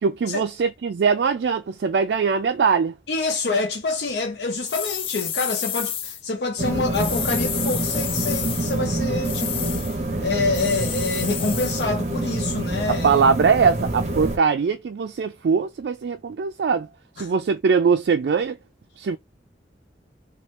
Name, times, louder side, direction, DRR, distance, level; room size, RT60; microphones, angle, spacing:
voice 1, 0.0-2.9 13.0-16.9 17.2-18.6 19.0-19.2, right 5 dB, 65° right, 0.3 m, -21 dB
voice 2, 3.1-13.2 17.2-17.3, left 3 dB, 65° left, 0.6 m, -27 dB
sound 1, 4.7-6.2 6.9-8.8 9.2-10.0 10.5-11.9, left 9 dB, 30° left, 0.4 m, -30 dB
sound 2, 6.6-14.4, right 2 dB, 40° right, 0.7 m, -27 dB
2.9 x 2.3 x 3.0 m
head